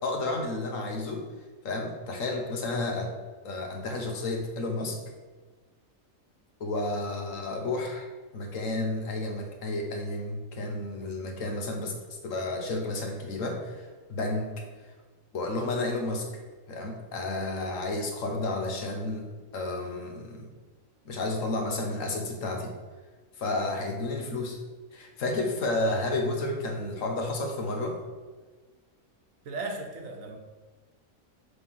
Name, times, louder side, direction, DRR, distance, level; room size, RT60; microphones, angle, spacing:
voice 1, 0.0-1.2 1.6-3.1 3.4-5.0 6.6-8.1 8.3-14.5 15.3-16.2 16.7-20.5 21.1-22.7 23.4-24.6 24.9-28.0, left 2 dB, 75° left, 3 dB, 1.4 m, -31 dB
voice 2, 29.4-30.4, right 3 dB, 75° right, 4 dB, 1.2 m, -36 dB
6.7 x 3.3 x 5.5 m, 1.4 s
omnidirectional pair, 1.4 m